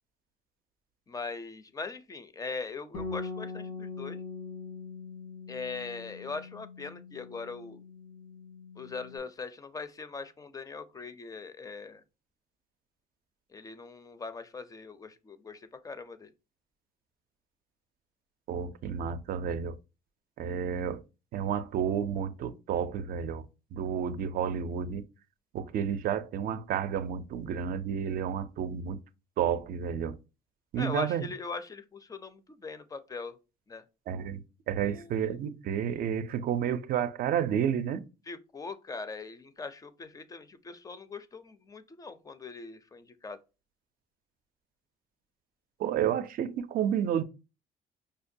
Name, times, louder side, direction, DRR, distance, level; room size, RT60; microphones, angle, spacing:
voice 1, 1.1-4.2 5.5-7.8 8.8-12.0 13.5-16.3 30.8-33.4 33.7-33.8 34.8-35.4 38.3-43.4, left 4 dB, 20° left, 0.4 m, -41 dB
Bass guitar, 2.9-9.2, left 4 dB, 85° left, 1.2 m, -42 dB
voice 2, 18.5-19.8 20.4-21.0 21.3-23.4 23.7-25.0 25.5-29.0 29.4-30.2 30.7-31.3 34.1-38.0 45.8-47.2, right 8 dB, 60° right, 0.4 m, -31 dB
5.1 x 2.2 x 2.6 m
cardioid pair, 110°, 17 cm